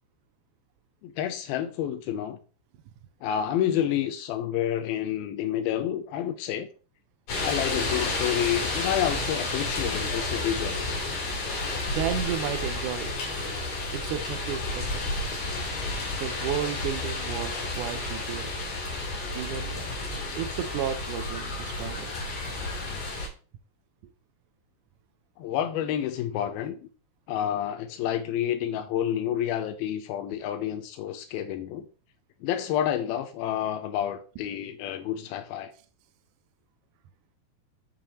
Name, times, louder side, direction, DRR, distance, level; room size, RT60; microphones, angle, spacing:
voice 1, 1.0-2.4 3.2-6.7 7.4-11.0 25.4-26.8 27.3-31.9 32.4-35.7, left 10 dB, 85° left, 2.5 m, -29 dB
sound 1, 7.3-23.3, left 2 dB, 55° left, 3.3 m, -31 dB
voice 2, 11.8-13.1 13.9-15.1 16.2-18.5 19.3-22.2, right 10 dB, 80° right, 1.8 m, -33 dB
7.5 x 6.8 x 3.0 m
omnidirectional pair, 4.3 m